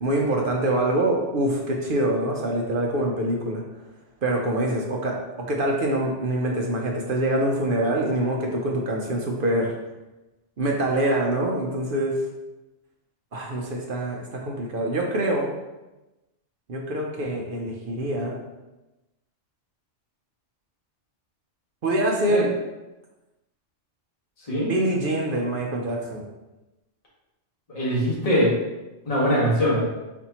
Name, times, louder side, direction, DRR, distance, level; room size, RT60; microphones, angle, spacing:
voice 1, 0.0-3.6 4.2-9.7 10.6-12.2 13.3-15.5 16.7-18.4 21.8-22.5 24.7-26.3, right 1 dB, 55° right, 0 dB, 0.7 m, -25 dB
voice 2, 27.7-28.5 29.0-29.8, equal, 30° left, -7 dB, 1.5 m, -22 dB
4.4 x 4.2 x 2.9 m, 1.0 s
omnidirectional pair, 1.3 m